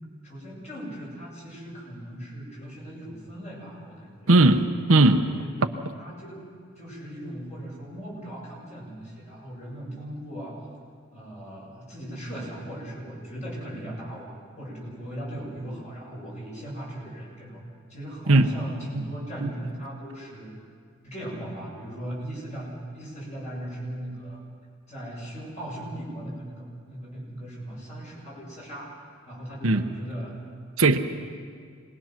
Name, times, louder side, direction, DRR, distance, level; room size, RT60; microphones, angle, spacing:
voice 1, 0.2-4.3 5.2-5.5 6.0-6.4 6.8-10.6 11.1-17.6 17.9-20.5 21.0-24.4 24.9-28.9 29.2-30.3, right 1 dB, 35° left, -4 dB, 7.0 m, -38 dB
voice 2, 4.3-5.2 18.3-18.6 18.9-19.0 19.4-19.5 29.6-29.9 30.8-31.0, right 2 dB, 75° right, 7 dB, 1.0 m, -18 dB
26.5 x 20.5 x 6.0 m, 2.1 s
head